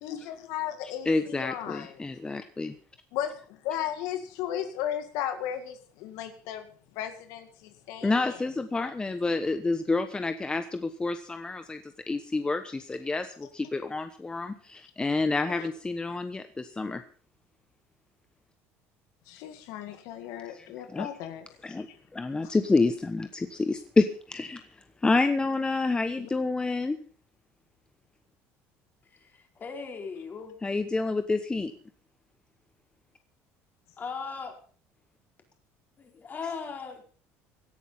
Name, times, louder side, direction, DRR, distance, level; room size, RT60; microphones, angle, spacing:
voice 1, 0.0-2.0 3.1-6.7 6.9-8.4 15.5-15.7 16.1-16.2 19.3-21.5 21.9-22.0 22.4-22.5 26.2-26.3, left 10 dB, 80° left, 8 dB, 2.1 m, -35 dB
voice 2, 1.0-2.7 8.0-17.0 20.5-20.7 20.9-21.1 21.6-21.9 22.1-24.6 25.0-27.0 30.6-31.7, left 3 dB, 15° left, 9 dB, 1.1 m, -28 dB
voice 3, 29.2-30.6 34.0-34.6 36.0-37.1, left 5 dB, 30° left, 3 dB, 4.6 m, -38 dB
17.5 x 11.0 x 5.6 m, 0.41 s
cardioid pair, 120°, 6 cm